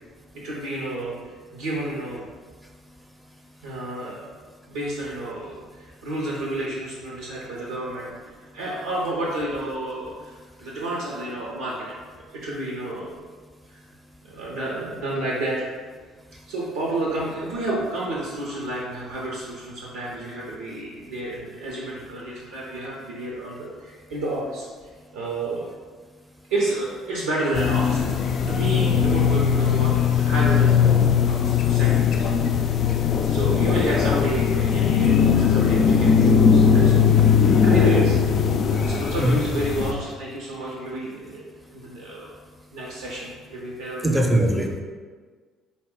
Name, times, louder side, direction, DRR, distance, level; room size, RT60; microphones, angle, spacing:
voice 1, 0.4-2.2 3.6-4.3 4.7-8.1 8.5-12.0 12.3-13.2 13.7-13.8 14.2-15.6 16.5-24.7 25.1-25.7 26.5-32.2 32.5-32.7 33.3-37.2 37.6-38.2 38.7-42.3 42.7-44.2, right 2 dB, 80° right, -5 dB, 0.6 m, -30 dB
sound 1, 27.5-39.9, left 7 dB, 55° left, 0.3 m, -19 dB
voice 2, 39.2-39.5 44.0-44.8, equal, 10° right, 2 dB, 0.6 m, -21 dB
4.1 x 2.1 x 3.5 m, 1.5 s
hypercardioid pair, 55°, 0 cm